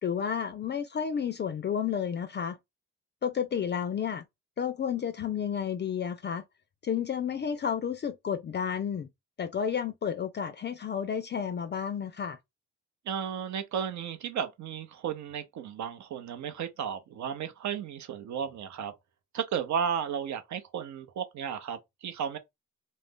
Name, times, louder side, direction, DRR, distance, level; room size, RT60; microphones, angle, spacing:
voice 1, 0.0-2.6 3.2-4.2 4.6-6.4 6.8-9.1 9.4-12.4, left 7 dB, 35° left, 0.4 m, -31 dB
voice 2, 13.1-18.9 19.3-22.4, right 8 dB, 70° right, 0.7 m, -34 dB
2.5 x 2.1 x 3.5 m
cardioid pair, 70°, 30 cm